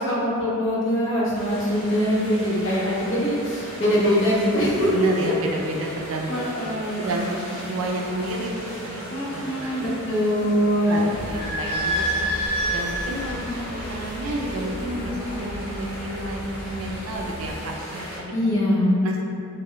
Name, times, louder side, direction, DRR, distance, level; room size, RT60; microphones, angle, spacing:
voice 1, 0.0-4.9 5.2-5.3 6.3-7.1 9.1-11.1 13.3-13.7 18.3-19.0, equal, 60° left, -6 dB, 0.6 m, -23 dB
sound 1, 1.3-18.2, equal, 80° left, 0.9 m, -37 dB
voice 2, 4.9-6.5 6.9-9.0 9.3-9.9 10.6-12.3 12.7-18.3 19.0-19.2, right 1 dB, 65° right, 1 dB, 0.3 m, -30 dB
Idling / Squeak, 11.1-17.5, equal, 30° right, 0.8 m, -30 dB
2.1 x 2.0 x 3.6 m, 2.5 s
head